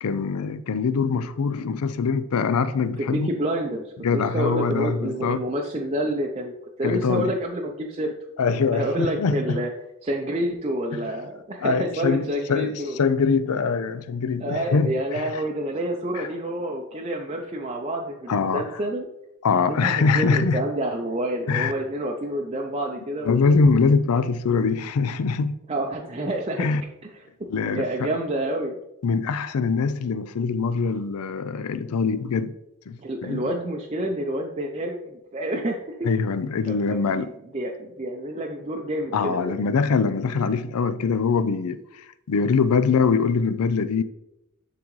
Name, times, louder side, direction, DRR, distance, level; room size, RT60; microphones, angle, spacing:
voice 1, 0.0-3.3 4.0-5.4 6.8-7.3 8.4-9.6 10.9-11.0 11.6-15.4 16.1-16.3 18.3-18.8 19.4-20.6 21.5-21.7 23.2-25.6 26.6-26.8 27.5-28.1 29.0-32.5 32.9-33.5 36.0-37.3 39.1-44.0, left 5 dB, 85° left, 0.4 m, -23 dB
voice 2, 3.0-8.1 8.7-9.7 10.0-13.0 14.4-19.1 19.7-23.5 25.7-26.7 27.6-28.8 33.0-36.1 36.7-37.3 37.5-39.6, right 1 dB, 25° right, 0.5 m, -28 dB
10.5 x 3.9 x 3.1 m
head